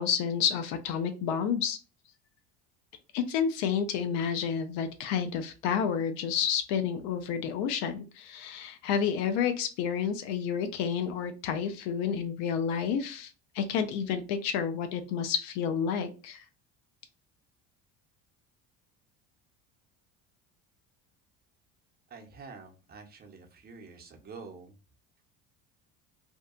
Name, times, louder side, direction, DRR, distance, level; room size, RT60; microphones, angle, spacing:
voice 1, 0.0-1.8 3.1-16.4, left 7 dB, 75° left, 8 dB, 0.5 m, -30 dB
voice 2, 22.1-24.8, right 4 dB, 25° right, 3 dB, 0.7 m, -47 dB
2.7 x 2.2 x 2.4 m, 0.32 s
supercardioid pair, 105°, 35 cm